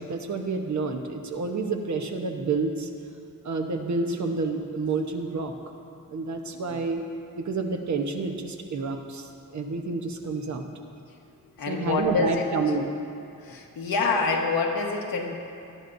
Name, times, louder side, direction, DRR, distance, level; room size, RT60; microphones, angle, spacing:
voice 1, 0.0-2.9 3.4-5.5 6.1-7.0 7.4-10.6 11.6-12.9, right 4 dB, 55° right, 4 dB, 1.1 m, -29 dB
voice 2, 11.6-12.5 13.4-15.4, left 4 dB, 90° left, 1 dB, 1.4 m, -27 dB
19.0 x 11.5 x 2.7 m, 2.6 s
wide cardioid pair, 135°, 35 cm